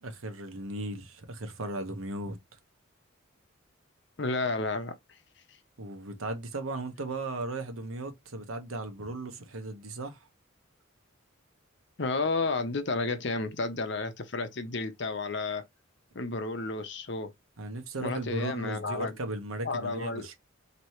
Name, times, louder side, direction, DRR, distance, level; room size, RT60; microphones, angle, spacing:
voice 1, 0.0-2.4 5.8-10.3 17.6-20.3, right 2 dB, 85° right, 0.9 m, -36 dB
voice 2, 4.2-4.9 12.0-15.6 16.1-17.3 18.0-19.1 19.6-20.3, left 3 dB, 55° left, 0.8 m, -31 dB
4.3 x 3.0 x 3.1 m
head